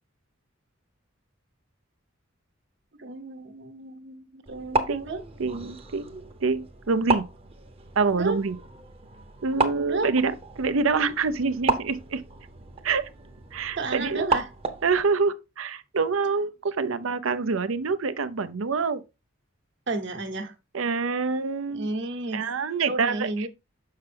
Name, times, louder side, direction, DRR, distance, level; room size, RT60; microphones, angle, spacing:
voice 1, 3.0-5.2 8.1-8.4 9.7-10.1 13.8-14.5 19.9-20.5 21.7-22.5 22.8-23.5, right 2 dB, 60° right, 1.1 m, -32 dB
sound 1, 4.5-15.0, right 3 dB, 30° right, 0.8 m, -33 dB
voice 2, 5.4-6.0 6.4-7.2 8.0-8.6 9.4-12.2 12.8-13.1 13.5-14.2 14.8-19.0 20.7-21.9 22.3-23.5, right 4 dB, 90° right, 0.6 m, -26 dB
6.8 x 5.7 x 3.4 m
head